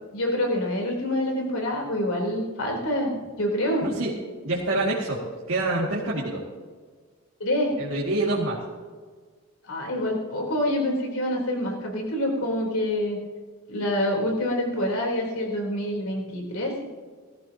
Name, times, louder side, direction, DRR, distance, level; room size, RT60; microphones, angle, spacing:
voice 1, 0.1-3.9 7.4-7.8 9.7-13.2 13.7-16.8, left 1 dB, 75° left, 0 dB, 3.6 m, -26 dB
voice 2, 3.8-4.1 4.4-5.2 5.5-6.4 7.8-8.6, right 2 dB, 60° right, -5 dB, 2.1 m, -26 dB
18.5 x 14.5 x 2.9 m, 1.5 s
head